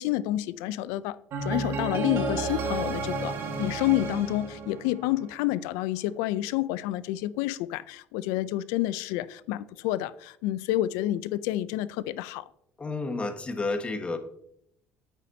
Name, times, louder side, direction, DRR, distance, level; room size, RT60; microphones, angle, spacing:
voice 1, 0.0-12.4, left 15 dB, 85° left, 16 dB, 0.4 m, -29 dB
sound 1, 1.3-5.4, right 3 dB, 60° right, 1.9 m, -31 dB
voice 2, 12.8-14.2, left 3 dB, 25° left, 6 dB, 1.4 m, -30 dB
9.5 x 8.4 x 2.8 m, 0.74 s
supercardioid pair, 90°, 5 cm